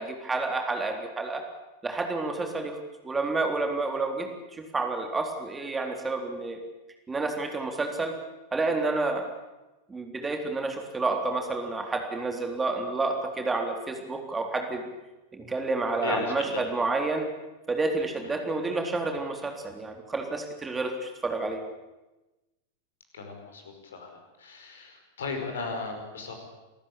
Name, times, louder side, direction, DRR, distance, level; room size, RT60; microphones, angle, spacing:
voice 1, 0.0-1.4 1.8-4.3 4.6-6.6 7.1-8.2 8.5-9.2 9.9-14.9 15.3-17.3 17.7-21.6, right 3 dB, 15° right, 4 dB, 3.7 m, -29 dB
voice 2, 16.0-16.6 16.9-17.0 18.3-18.4 23.1-24.1 24.4-26.3, left 4 dB, 65° left, 5 dB, 5.2 m, -36 dB
28.0 x 14.5 x 8.7 m, 1.1 s
figure-of-eight pair, 90°, 0 cm